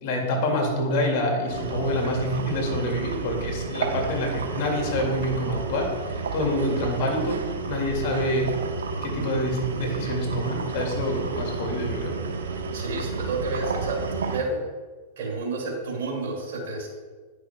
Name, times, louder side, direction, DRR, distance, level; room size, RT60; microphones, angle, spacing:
voice 1, 0.0-8.5 9.0-12.2, left 1 dB, 60° left, 1 dB, 2.0 m, -27 dB
sound 1, 1.5-14.4, right 4 dB, 85° right, 0.8 m, -31 dB
voice 2, 12.7-14.7 15.2-16.9, right 3 dB, 70° right, -2 dB, 2.2 m, -30 dB
9.8 x 6.3 x 2.2 m, 1.4 s
hypercardioid pair, 115°, 0 cm